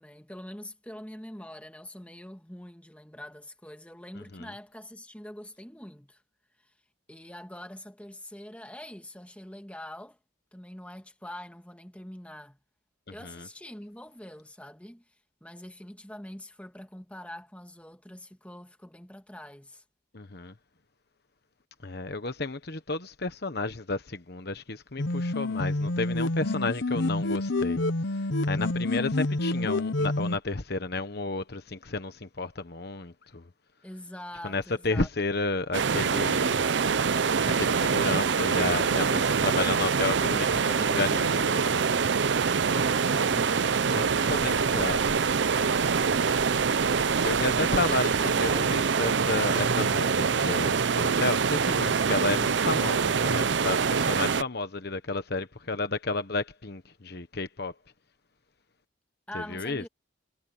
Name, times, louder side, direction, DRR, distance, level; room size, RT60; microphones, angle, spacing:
voice 1, 0.0-6.2 6.6-6.7 7.1-10.2 10.5-12.6 13.1-19.8 33.8-35.1 42.7-45.4 47.6-49.1 59.3-59.9, left 1 dB, 5° left, 2.0 m, -44 dB
voice 2, 20.1-20.5 21.8-27.8 28.5-33.4 34.4-36.7 37.6-42.1 44.0-44.2 44.4-45.0 47.2-48.1 48.4-57.7 59.3-59.8, left 3 dB, 55° left, 1.2 m, -32 dB
sound 1, 25.0-30.4, left 2 dB, 75° left, 1.0 m, -28 dB
sound 2, 35.7-54.4, right 5 dB, 60° right, 0.6 m, -25 dB
sound 3, 44.0-49.4, right 2 dB, 45° right, 1.2 m, -45 dB
head